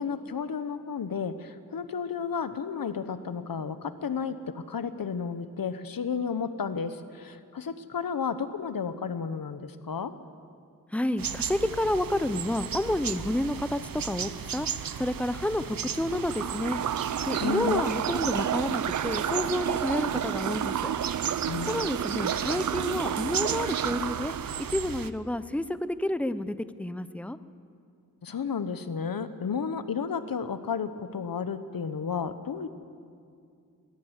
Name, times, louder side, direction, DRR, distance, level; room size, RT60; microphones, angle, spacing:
voice 1, 0.0-10.1 17.4-17.8 21.5-21.7 28.2-32.7, left 6 dB, 80° left, 11 dB, 1.1 m, -32 dB
voice 2, 10.9-13.8 14.0-14.7 15.0-16.8 17.3-20.9 21.7-24.3 24.7-27.4, left 1 dB, 5° left, 13 dB, 0.6 m, -30 dB
sound 1, 11.2-25.1, right 7 dB, 80° right, 0.8 m, -36 dB
sound 2, 16.0-24.7, right 9 dB, 60° right, 0.5 m, -31 dB
22.5 x 15.5 x 8.1 m, 2.4 s
wide cardioid pair, 115°, 34 cm